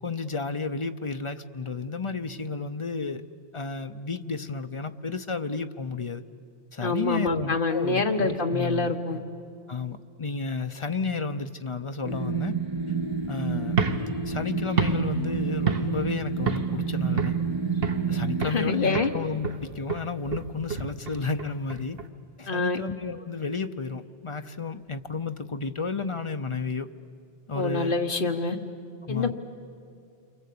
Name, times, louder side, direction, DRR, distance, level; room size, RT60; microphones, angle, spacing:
voice 1, 0.0-3.2 3.5-6.2 6.7-8.9 9.7-12.5 13.3-13.8 14.3-17.3 18.1-22.0 22.4-26.9 27.5-28.0 29.0-29.3, left 4 dB, 35° left, 9 dB, 0.6 m, -32 dB
voice 2, 6.8-9.2 18.4-19.1 22.5-22.8 27.5-28.6 29.1-29.3, left 3 dB, 50° left, 5 dB, 1.6 m, -26 dB
sound 1, 12.0-18.5, right 5 dB, 25° right, 1.1 m, -29 dB
sound 2, 13.7-16.1 16.5-16.8 17.2-18.1 18.4-18.7 18.9-22.1, right 4 dB, 60° right, 1.4 m, -30 dB
29.0 x 23.5 x 8.5 m, 2.4 s
omnidirectional pair, 1.1 m